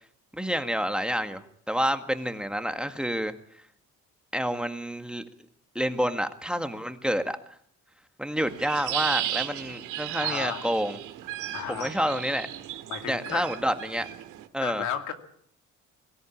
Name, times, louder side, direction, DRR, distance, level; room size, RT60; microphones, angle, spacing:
voice 1, 0.3-3.3 4.3-5.2 5.8-7.4 8.2-11.0 11.8-12.5 13.0-14.1 14.5-14.9, equal, 5° right, 7 dB, 1.8 m, -28 dB
sound 1, 8.4-14.5, right 13 dB, 90° right, 2.0 m, -35 dB
voice 2, 10.2-10.6 11.5-11.9 12.9-13.5 14.6-15.1, left 8 dB, 85° left, 6 dB, 2.6 m, -33 dB
23.5 x 13.5 x 8.6 m, 0.65 s
cardioid pair, 90°, 30 cm